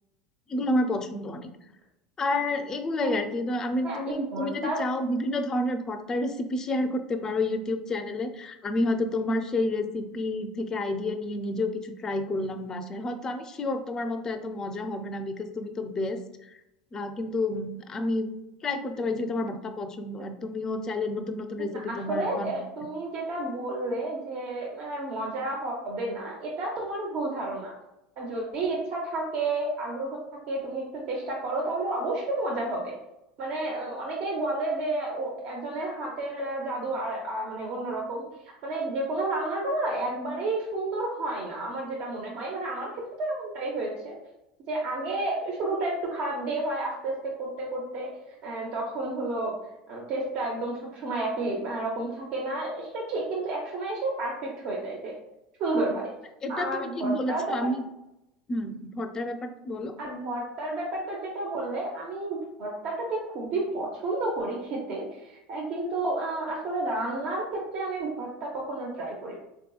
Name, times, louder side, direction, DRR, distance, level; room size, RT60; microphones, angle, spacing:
voice 1, 0.5-1.5 2.2-16.6 16.9-22.5 56.4-57.8 58.5-60.0, left 2 dB, 30° left, 8 dB, 0.4 m, -30 dB
voice 2, 3.8-4.8 19.3-19.5 21.7-27.7 28.2-30.2 30.5-32.9 33.4-38.3 38.6-42.9 43.2-44.2 44.7-47.1 47.4-49.5 49.9-55.1 55.6-56.0 56.5-57.4 60.0-69.3, right 2 dB, 55° right, -2 dB, 0.7 m, -31 dB
3.6 x 2.7 x 2.3 m, 0.89 s
hypercardioid pair, 90°, 2 cm